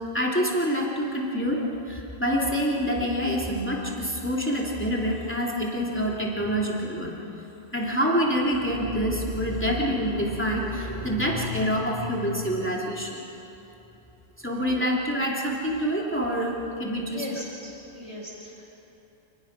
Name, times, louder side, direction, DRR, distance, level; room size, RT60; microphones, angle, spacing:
voice 1, 0.0-7.2 7.7-13.2 14.4-17.3, equal, 10° left, -4 dB, 3.2 m, -26 dB
voice 2, 17.0-18.7, equal, 25° right, -4 dB, 6.7 m, -38 dB
28.0 x 20.5 x 6.1 m, 2.9 s
omnidirectional pair, 1.3 m